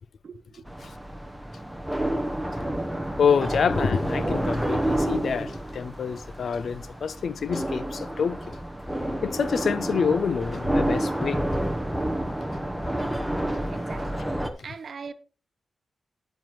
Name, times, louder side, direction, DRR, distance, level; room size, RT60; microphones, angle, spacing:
voice 1, 0.2-0.7 13.7-14.2 14.6-15.1, right 5 dB, 50° right, 0.7 m, -40 dB
sound 1, 0.7-14.5, right 1 dB, ahead, 0.8 m, -29 dB
voice 2, 3.2-8.6 9.2-11.4, left 6 dB, 55° left, 0.4 m, -27 dB
9.8 x 8.9 x 3.0 m
wide cardioid pair, 145°, 0 cm